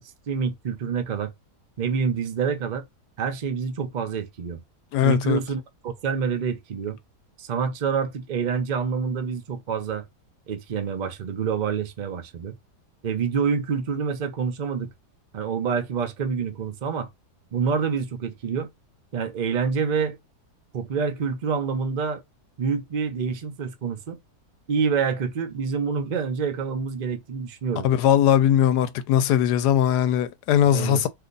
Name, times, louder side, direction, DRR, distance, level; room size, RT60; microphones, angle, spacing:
voice 1, 0.0-1.3 1.8-2.8 3.2-4.6 5.0-7.0 7.4-10.0 10.5-12.6 13.0-14.9 15.3-17.1 17.5-18.7 19.1-20.2 20.7-22.2 22.6-24.2 24.7-27.9 30.7-31.1, right 6 dB, 55° right, 0.5 m, -27 dB
voice 2, 4.9-5.4 27.8-31.1, left 10 dB, 80° left, 1.2 m, -20 dB
2.8 x 2.4 x 3.9 m
omnidirectional pair, 1.7 m